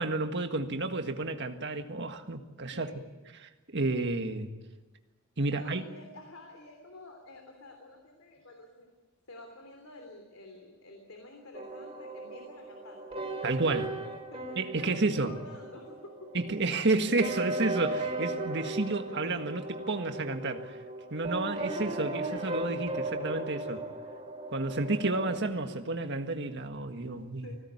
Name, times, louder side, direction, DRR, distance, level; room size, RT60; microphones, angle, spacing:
voice 1, 0.0-2.9 3.7-4.5 5.4-5.8 13.4-13.9 14.6-15.3 16.3-20.8 21.1-23.8 24.5-27.5, right 2 dB, 60° right, 6 dB, 1.7 m, -31 dB
voice 2, 2.7-3.1 5.5-8.9 9.3-16.3 19.1-19.4 23.6-23.8 27.0-27.6, left 2 dB, 90° left, 3 dB, 3.2 m, -50 dB
sound 1, 11.5-25.4, right 2 dB, 30° right, 3.8 m, -37 dB
20.5 x 17.0 x 9.5 m, 1.2 s
head